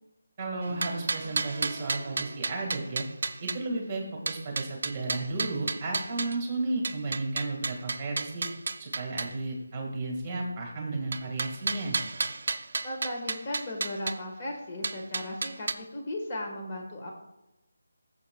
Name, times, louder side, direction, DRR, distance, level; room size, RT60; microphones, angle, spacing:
voice 1, 0.4-3.1 3.4-8.5 8.8-12.0, right 2 dB, 20° right, -1 dB, 1.6 m, -33 dB
sound 1, 0.6-3.6 4.3-6.4 6.8-9.3 11.1-14.2 14.8-15.7, right 3 dB, 55° right, 0.7 m, -32 dB
sound 2, 0.7-3.9, right 2 dB, 5° left, 2.1 m, -49 dB
voice 2, 12.8-17.1, left 1 dB, 30° left, 0 dB, 1.3 m, -36 dB
14.5 x 7.3 x 2.2 m, 0.97 s
figure-of-eight pair, 165°, 0 cm